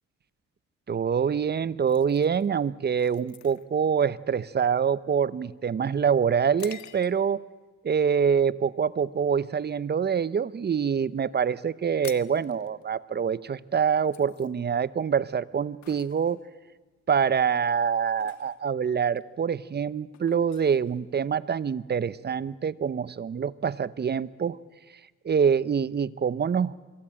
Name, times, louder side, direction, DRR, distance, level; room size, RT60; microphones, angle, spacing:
voice 1, 0.9-7.4 7.8-16.4 17.1-24.6 25.2-26.7, right 7 dB, 35° right, 18 dB, 0.8 m, -25 dB
sound 1, 1.9-7.5 8.0-8.2 8.7-9.1 9.4-10.6 10.9-11.0 11.2-11.3 11.6-21.6, left 11 dB, 70° left, 1.5 m, -50 dB
25.0 x 22.5 x 8.9 m, 1.3 s
cardioid pair, 90°, 30 cm